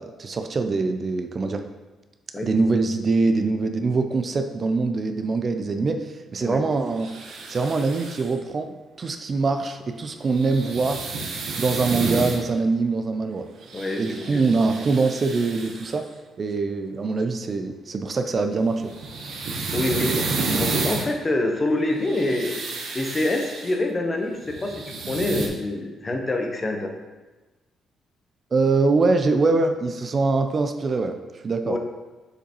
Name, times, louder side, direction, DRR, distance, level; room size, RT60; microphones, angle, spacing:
voice 1, 0.0-1.6 2.4-7.1 7.5-11.0 11.6-13.5 14.0-16.1 16.4-18.9 28.5-31.2 31.4-31.8, right 3 dB, 40° right, 6 dB, 0.5 m, -23 dB
sound 1, 7.0-8.3 10.3-12.4 13.6-16.0 18.7-21.1 21.8-23.8 24.4-25.5, right 3 dB, 70° right, 1.0 m, -30 dB
voice 2, 13.7-14.4 19.7-26.9 31.6-31.8, left 2 dB, 25° left, 3 dB, 0.9 m, -26 dB
6.7 x 5.1 x 3.0 m, 1.2 s
cardioid pair, 90°, 0 cm